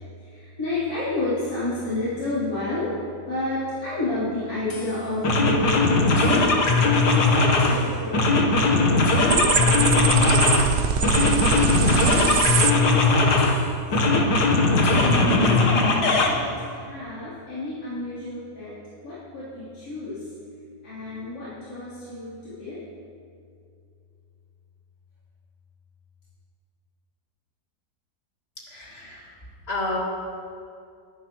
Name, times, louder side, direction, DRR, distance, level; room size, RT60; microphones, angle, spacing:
voice 1, 0.2-2.9 3.3-7.3 7.6-8.8 9.1-10.6 11.1-12.8 13.1-13.3 13.9-15.3 15.7-18.7 19.0-20.2 20.8-22.8, left 2 dB, 65° left, -14 dB, 4.1 m, -31 dB
sound 1, 4.7-4.9 5.2-7.8 8.1-10.7 11.0-13.6 13.9-16.3, left 3 dB, 85° left, 1.8 m, -19 dB
sound 2, 9.3-12.7, right 7 dB, 75° right, 0.5 m, -23 dB
voice 2, 28.7-29.4 29.7-30.0, left 2 dB, 40° left, -4 dB, 2.6 m, -31 dB
21.0 x 10.5 x 3.1 m, 2.4 s
omnidirectional pair, 1.7 m